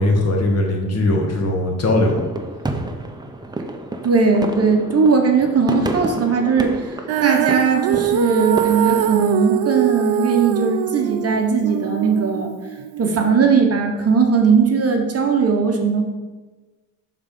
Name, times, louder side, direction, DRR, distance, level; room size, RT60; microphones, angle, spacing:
voice 1, 0.0-2.2, left 1 dB, 40° left, 1 dB, 1.5 m, -19 dB
sound 1, 1.9-9.3, right 2 dB, 10° right, 0.6 m, -30 dB
voice 2, 4.0-12.5 13.0-16.0, right 5 dB, 40° right, 3 dB, 1.0 m, -18 dB
Female singing, 7.1-13.3, right 12 dB, 75° right, 0.5 m, -23 dB
7.1 x 3.8 x 5.3 m, 1.3 s
cardioid pair, 105°, 38 cm